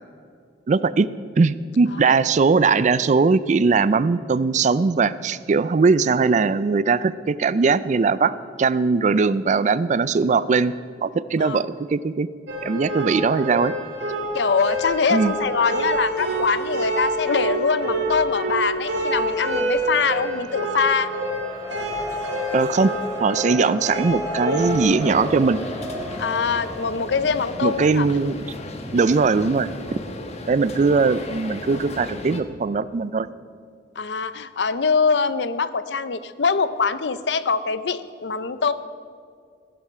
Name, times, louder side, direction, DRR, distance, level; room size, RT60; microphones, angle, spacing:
voice 1, 0.7-1.1 1.4-10.7 11.0-12.3 12.6-13.7 15.1-15.3 22.5-22.9 23.2-25.6 27.6-28.4 28.9-29.7 30.5-33.3, right 4 dB, 45° right, 17 dB, 0.4 m, -20 dB
sound 1, 12.5-24.8, right 1 dB, 75° right, 2.2 m, -27 dB
voice 2, 14.3-21.1 23.6-23.7 26.2-28.1 34.0-38.7, left 5 dB, 75° left, 14 dB, 0.6 m, -23 dB
Race car auto racing, 18.4-30.8, equal, 5° left, 3.7 m, -38 dB
sound 2, 24.6-32.4, left 2 dB, 40° left, 1.1 m, -35 dB
15.5 x 12.0 x 4.4 m, 2.2 s
head